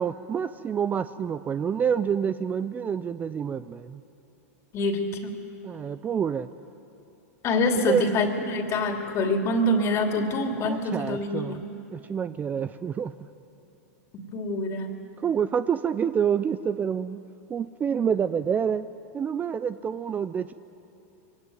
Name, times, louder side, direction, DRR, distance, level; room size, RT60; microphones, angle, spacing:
voice 1, 0.0-4.0 5.6-6.5 7.7-8.0 10.6-11.6 11.9-13.1 15.2-17.2 17.5-18.9 19.1-20.5, right 7 dB, 20° right, 13 dB, 0.5 m, -27 dB
voice 2, 4.7-5.3 7.4-11.7 14.1-14.9, left 2 dB, 35° left, 4 dB, 2.8 m, -26 dB
22.5 x 17.0 x 9.3 m, 2.8 s
hypercardioid pair, 120°, 8 cm